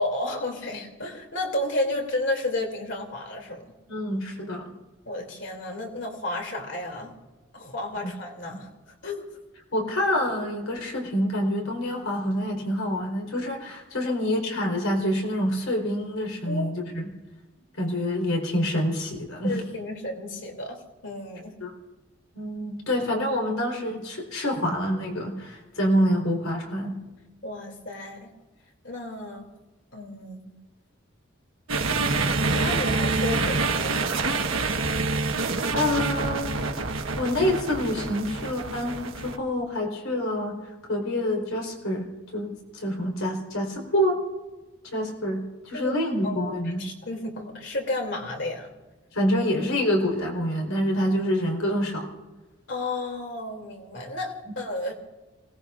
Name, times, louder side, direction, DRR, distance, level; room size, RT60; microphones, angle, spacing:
voice 1, 0.0-3.7 5.1-7.2 7.5-8.7 9.0-9.2 16.5-16.7 19.4-21.6 27.4-28.3 28.8-29.4 29.9-30.5 32.5-34.4 45.7-45.9 46.2-48.7 52.7-54.9, left 1 dB, 60° left, 2 dB, 2.9 m, -32 dB
voice 2, 3.9-4.7 9.7-17.1 17.8-19.6 21.6-21.7 22.3-27.0 35.7-42.1 42.3-44.2 44.9-46.9 49.1-52.1, equal, 90° left, 0 dB, 4.3 m, -27 dB
sound 1, 31.7-39.4, right 3 dB, 80° right, 1.4 m, -26 dB
28.0 x 18.5 x 2.6 m, 1.2 s
head